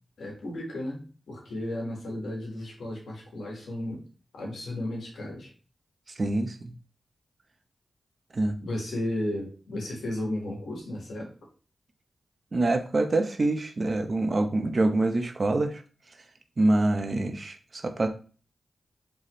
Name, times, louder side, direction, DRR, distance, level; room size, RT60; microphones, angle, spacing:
voice 1, 0.2-4.0 4.3-5.5 8.6-11.3, left 1 dB, 85° left, -1 dB, 1.6 m, -34 dB
voice 2, 6.2-6.7 8.3-8.6 12.5-15.8 16.6-18.1, right 2 dB, 50° right, 7 dB, 0.7 m, -25 dB
4.1 x 3.5 x 3.1 m, 0.37 s
cardioid pair, 50°, 0 cm